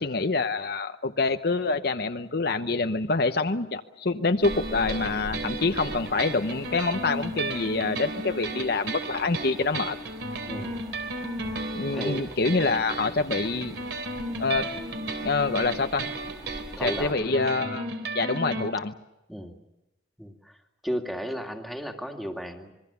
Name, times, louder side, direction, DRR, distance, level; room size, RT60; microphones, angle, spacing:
voice 1, 0.0-10.0 11.7-13.8 14.4-14.7 15.2-16.1 16.8-17.9 18.1-18.9, left 3 dB, 55° left, 8 dB, 0.9 m, -26 dB
sound 1, 4.4-17.1, equal, 20° right, 2.4 m, -46 dB
sound 2, 4.4-18.7, right 2 dB, 75° right, 3.6 m, -34 dB
voice 2, 10.5-10.8 11.9-12.3 16.8-17.3 19.3-19.6 20.2-20.6 20.8-22.7, equal, ahead, 2 dB, 2.3 m, -34 dB
26.5 x 22.0 x 7.0 m, 0.96 s
head